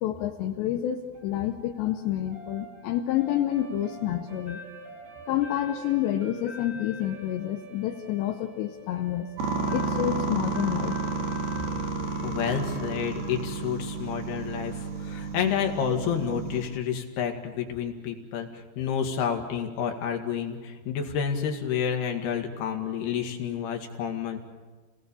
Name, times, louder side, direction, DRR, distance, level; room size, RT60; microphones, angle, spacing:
voice 1, 0.0-4.6 5.3-9.3 9.7-11.0, left 12 dB, 85° left, 4 dB, 3.1 m, -28 dB
sound 1, 1.1-15.2, right 1 dB, 30° right, 5.8 m, -46 dB
sound 2, 9.4-16.6, right 4 dB, 65° right, 4.3 m, -31 dB
voice 2, 12.2-24.4, left 8 dB, 70° left, 3 dB, 4.0 m, -29 dB
29.5 x 18.5 x 7.0 m, 1.3 s
omnidirectional pair, 4.9 m